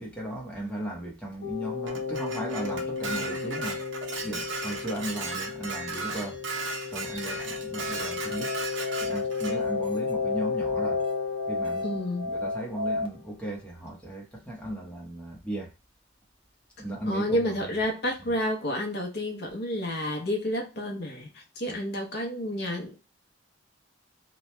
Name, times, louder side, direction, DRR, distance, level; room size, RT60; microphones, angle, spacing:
voice 1, 0.0-3.8 4.2-6.4 6.9-8.6 9.0-11.0 11.5-11.9 12.2-15.7 16.8-17.6 21.7-21.8, right 1 dB, 5° left, 0.8 m, -36 dB
sound 1, 1.4-13.0, left 5 dB, 80° left, 1.0 m, -33 dB
Dishes pots and pans, 1.9-9.6, right 3 dB, 75° right, 0.7 m, -36 dB
Musical instrument, 7.4-13.1, left 2 dB, 30° right, 0.5 m, -34 dB
voice 2, 11.8-12.3 17.1-23.0, left 1 dB, 60° left, 0.8 m, -30 dB
2.9 x 2.2 x 3.2 m
head